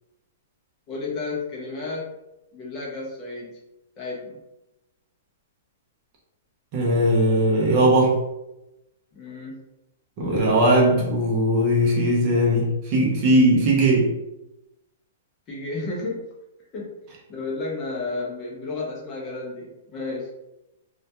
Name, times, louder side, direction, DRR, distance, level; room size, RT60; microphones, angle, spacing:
voice 1, 0.9-2.1 2.5-3.5 4.0-4.4 9.1-9.6 15.5-16.2 16.7-16.9 17.3-20.3, left 3 dB, 20° left, -4 dB, 0.5 m, -32 dB
voice 2, 6.7-8.2 10.2-14.1, right 1 dB, 30° right, -2 dB, 0.5 m, -19 dB
2.1 x 2.1 x 2.8 m, 0.93 s
hypercardioid pair, 175°, 0 cm